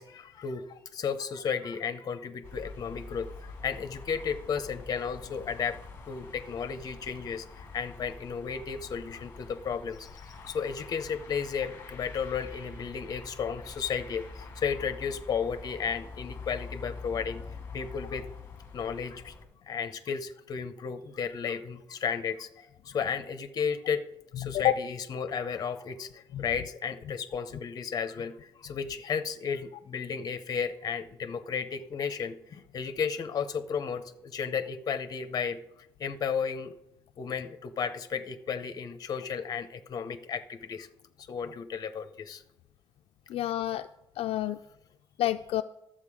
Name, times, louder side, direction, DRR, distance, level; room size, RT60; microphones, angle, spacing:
voice 1, 0.0-5.8 6.1-17.4 17.7-18.3 18.7-19.3 19.7-24.0 24.4-35.6 36.0-36.7 37.2-40.9 41.3-42.4, left 6 dB, 40° left, 11 dB, 0.8 m, -33 dB
sound 1, 2.4-19.5, left 4 dB, 25° left, 1.5 m, -45 dB
voice 2, 24.4-24.8 26.3-26.4 43.3-43.9 44.2-44.6 45.2-45.6, left 13 dB, 70° left, 8 dB, 0.4 m, -28 dB
12.0 x 7.6 x 4.9 m, 0.84 s
cardioid pair, 170°, 10 cm